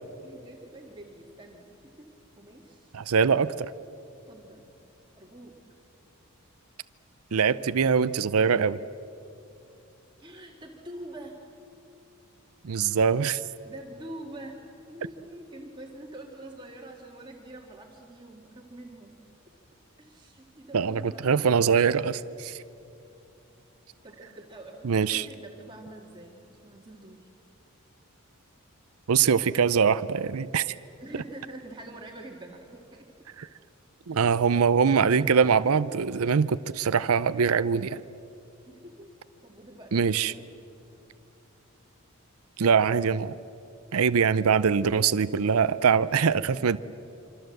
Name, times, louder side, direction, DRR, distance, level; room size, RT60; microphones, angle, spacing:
voice 1, 0.2-2.1 2.4-3.0 4.2-4.6 5.2-5.6 10.2-11.4 13.6-19.2 19.5-19.6 20.0-21.2 24.0-27.3 31.0-33.1 38.7-39.1 39.4-40.5 46.5-46.8, right 1 dB, 20° right, 0 dB, 2.0 m, -45 dB
voice 2, 2.9-3.7 7.3-8.8 12.6-13.4 20.7-22.6 24.8-25.3 29.1-30.6 33.4-33.5 34.1-38.0 39.9-40.3 42.6-43.4 43.9-46.8, right 6 dB, 75° right, 15 dB, 0.5 m, -23 dB
26.5 x 25.5 x 7.8 m, 2.7 s
head